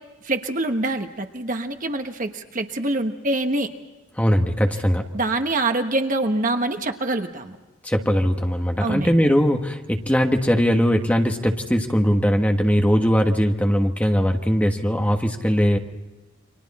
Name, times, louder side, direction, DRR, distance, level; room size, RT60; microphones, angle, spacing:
voice 1, 0.2-3.7 5.1-7.6 8.8-9.2, right 2 dB, 40° right, 6 dB, 1.3 m, -25 dB
voice 2, 4.2-5.0 7.8-15.8, equal, 5° left, 3 dB, 1.4 m, -20 dB
30.0 x 24.5 x 4.3 m, 1.1 s
head